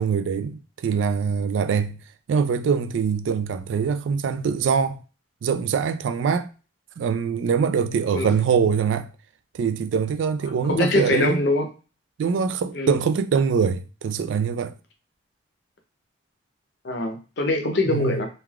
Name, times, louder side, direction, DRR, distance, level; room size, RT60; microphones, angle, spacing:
voice 1, 0.0-2.0 2.3-5.0 5.4-6.5 7.0-9.1 9.5-11.4 12.2-14.7 17.9-18.2, right 6 dB, 80° right, 0.3 m, -23 dB
voice 2, 10.7-11.7 12.7-13.0 16.8-18.3, left 2 dB, 65° left, 0.6 m, -23 dB
3.2 x 2.3 x 2.3 m
head